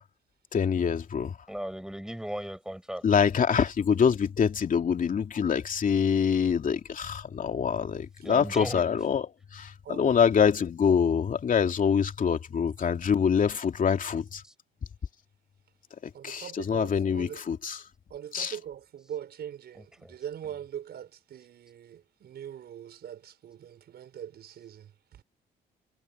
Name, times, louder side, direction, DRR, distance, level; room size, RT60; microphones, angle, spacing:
voice 1, 0.5-1.4 3.0-9.6 10.0-14.4 16.0-17.8 18.3-18.5, left 7 dB, 50° left, 2.8 m, -25 dB
voice 2, 1.5-3.1 8.2-8.8 19.8-20.1, equal, 5° right, 5.6 m, -36 dB
voice 3, 9.9-10.2 16.1-17.4 18.1-25.2, right 10 dB, 65° right, 5.9 m, -42 dB
supercardioid pair, 70°, 18 cm